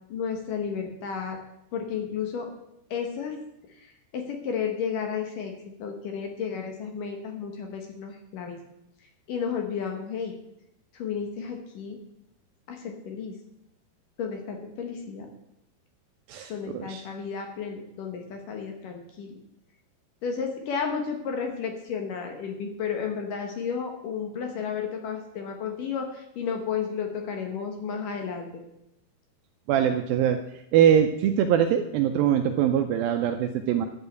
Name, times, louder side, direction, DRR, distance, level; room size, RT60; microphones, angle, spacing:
voice 1, 0.1-1.4 1.7-2.5 2.9-3.4 4.1-5.5 5.8-8.6 9.3-10.3 11.0-12.0 12.7-13.3 14.2-15.3 16.5-19.4 20.2-28.5, left 6 dB, 65° left, 3 dB, 2.5 m, -32 dB
voice 2, 16.3-17.1 29.7-30.4 30.7-33.9, right 9 dB, 80° right, 6 dB, 2.2 m, -23 dB
11.5 x 5.5 x 8.1 m, 0.82 s
omnidirectional pair, 4.7 m